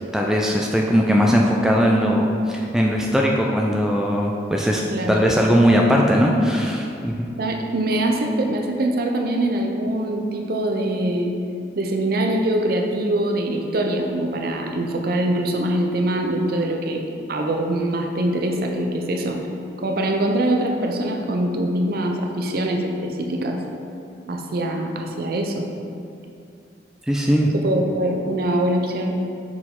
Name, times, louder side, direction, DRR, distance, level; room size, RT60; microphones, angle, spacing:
voice 1, 0.1-4.8 5.1-7.3 27.1-27.5, equal, 5° right, -1 dB, 0.3 m, -19 dB
voice 2, 7.4-11.3 11.8-19.4 19.8-23.6 24.3-25.7 27.5-29.2, right 1 dB, 55° right, 2 dB, 0.6 m, -23 dB
6.1 x 4.6 x 3.7 m, 2.5 s
head